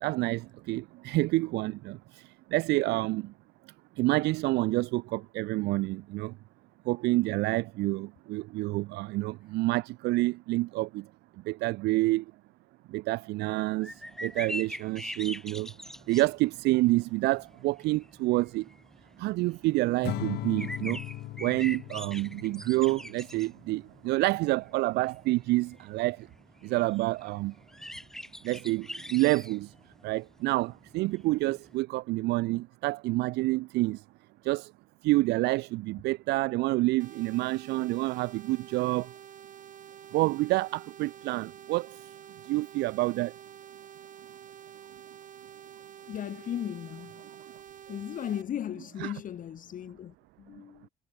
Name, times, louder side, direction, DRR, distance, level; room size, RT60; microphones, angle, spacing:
voice 1, 0.0-2.2 2.5-3.3 4.0-6.3 6.9-11.0 11.5-12.2 12.9-13.9 14.2-15.7 16.1-18.6 19.2-21.0 21.4-26.3 26.6-27.5 28.4-29.7 30.0-34.0 34.4-34.7 35.0-39.1 40.1-41.9 42.5-43.3 49.0-49.1, right 20 dB, 80° right, 0.5 m, -28 dB
sound 1, 13.8-31.8, equal, 5° left, 2.8 m, -44 dB
Acoustic guitar / Strum, 20.0-23.4, left 17 dB, 80° left, 4.4 m, -38 dB
sound 2, 37.0-48.4, right 9 dB, 50° right, 4.5 m, -49 dB
voice 2, 46.1-47.2 47.9-50.9, left 10 dB, 50° left, 1.8 m, -36 dB
cardioid pair, 110°, 17 cm